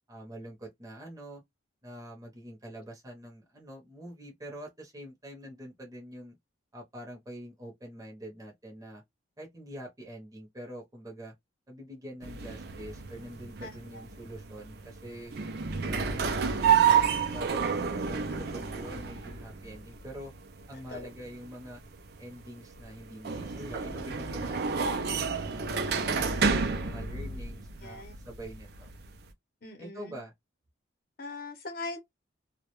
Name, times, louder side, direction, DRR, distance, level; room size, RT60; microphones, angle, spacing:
voice 1, 0.1-1.4 1.8-6.4 6.7-9.0 9.4-11.3 11.7-15.3 15.8-20.3 20.7-21.8 22.2-25.0 25.4-28.9 29.8-30.3, equal, 15° right, 0.7 m, -45 dB
sound 1, 12.2-29.3, right 6 dB, 50° right, 0.4 m, -30 dB
voice 2, 13.6-14.0 20.9-21.1 27.8-28.1 29.6-30.2 31.2-32.0, left 2 dB, 45° left, 0.7 m, -41 dB
2.2 x 2.1 x 2.9 m
head